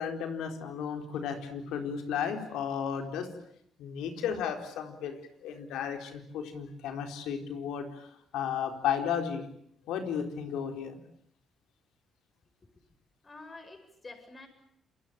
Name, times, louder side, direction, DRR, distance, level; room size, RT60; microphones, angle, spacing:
voice 1, 0.0-3.3 3.8-9.4 9.9-11.0, left 8 dB, 90° left, 6 dB, 4.2 m, -34 dB
voice 2, 13.2-14.5, left 3 dB, 30° left, 7 dB, 7.8 m, -48 dB
28.0 x 23.0 x 9.0 m, 0.70 s
cardioid pair, 90°, 0 cm